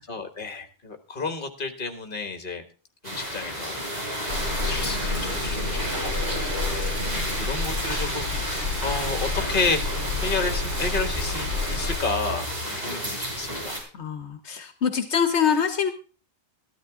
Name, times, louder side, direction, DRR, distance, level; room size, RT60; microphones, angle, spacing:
voice 1, 0.1-2.6 3.0-9.9 10.2-13.8, left 3 dB, 50° left, 8 dB, 1.7 m, -31 dB
sound 1, 3.0-13.8, equal, 35° right, 4.3 m, -32 dB
Rain, 4.3-12.0, left 2 dB, 75° right, 6.3 m, -29 dB
voice 2, 13.9-15.9, left 7 dB, 80° left, 10 dB, 1.2 m, -24 dB
13.5 x 12.0 x 3.6 m, 0.36 s
omnidirectional pair, 1.1 m